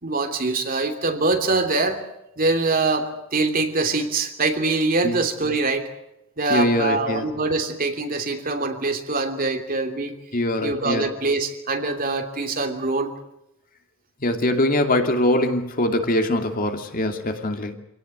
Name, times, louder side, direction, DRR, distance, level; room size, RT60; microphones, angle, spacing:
voice 1, 0.0-2.0 2.4-5.9 6.4-10.2 10.6-13.1, right 3 dB, 45° right, 5 dB, 3.0 m, -24 dB
voice 2, 6.5-7.3 10.3-11.0 14.2-17.7, left 1 dB, 45° left, 5 dB, 2.5 m, -22 dB
26.0 x 18.0 x 8.0 m, 0.88 s
head